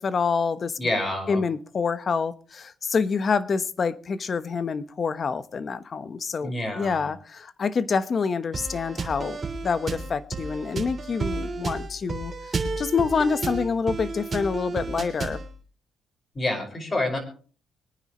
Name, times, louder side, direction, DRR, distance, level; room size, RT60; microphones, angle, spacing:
voice 1, 0.0-0.8 1.3-9.4 9.6-12.3 12.8-15.4, left 5 dB, 45° left, 1.0 m, -27 dB
voice 2, 0.8-1.4 6.4-7.1 16.3-17.2, left 1 dB, 30° left, 5.2 m, -28 dB
sound 1, 8.5-15.5, right 3 dB, 35° right, 3.5 m, -32 dB
24.0 x 9.8 x 3.1 m
cardioid pair, 90°, 0 cm